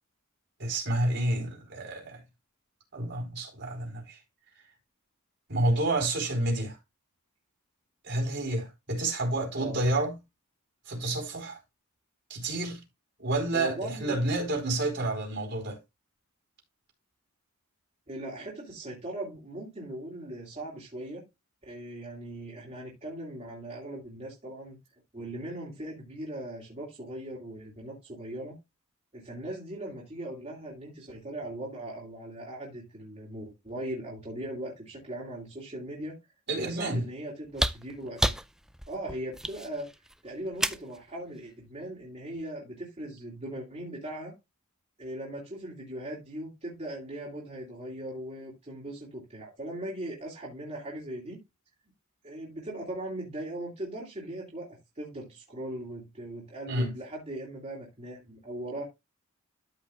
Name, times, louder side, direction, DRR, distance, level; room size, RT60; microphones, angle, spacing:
voice 1, 0.6-2.2 2.9-4.2 5.5-6.8 8.0-10.1 10.9-11.6 12.3-12.8 13.2-15.8 36.5-37.0 56.7-56.9, right 2 dB, 50° right, 3.9 m, -29 dB
voice 2, 13.5-14.2 18.1-21.2 21.7-24.8 25.1-28.6 29.1-36.2 36.6-38.3 38.9-39.9 40.2-44.3 45.0-51.4 52.2-54.7 55.0-58.8, right 1 dB, 30° right, 2.9 m, -39 dB
sound 1, 37.4-41.0 42.4-42.5, right 1 dB, ahead, 0.4 m, -31 dB
13.5 x 5.4 x 2.4 m
head